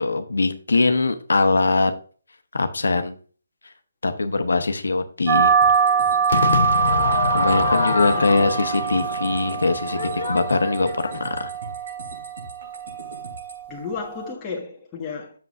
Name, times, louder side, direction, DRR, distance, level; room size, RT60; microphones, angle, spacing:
voice 1, 0.0-1.9 2.5-3.2 4.0-5.5 7.3-11.5, left 3 dB, 90° left, 1.0 m, -22 dB
sound 1, 5.3-14.3, right 6 dB, 25° right, 0.7 m, -24 dB
sound 2, 5.6-13.6, right 2 dB, 60° right, 2.7 m, -41 dB
Crowd / Fireworks, 6.3-11.6, left 4 dB, 60° left, 0.8 m, -26 dB
voice 2, 7.8-8.2 13.7-15.3, left 5 dB, 15° left, 1.5 m, -33 dB
7.8 x 7.0 x 2.5 m
hypercardioid pair, 165°, 0 cm